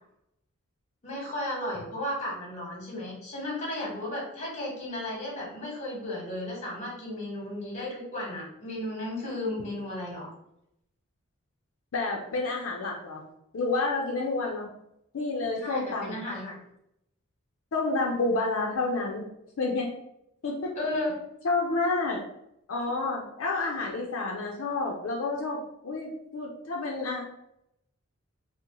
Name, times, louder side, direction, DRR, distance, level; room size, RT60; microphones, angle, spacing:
voice 1, 1.0-10.3 15.6-16.5 20.8-21.1, left 1 dB, 35° left, -3 dB, 1.2 m, -34 dB
voice 2, 11.9-13.2 13.5-14.7 15.1-16.2 17.7-19.2 19.6-19.9 20.4-20.8 21.4-22.2 22.7-27.2, left 3 dB, 75° left, -1 dB, 0.5 m, -29 dB
3.8 x 2.0 x 2.9 m, 0.78 s
head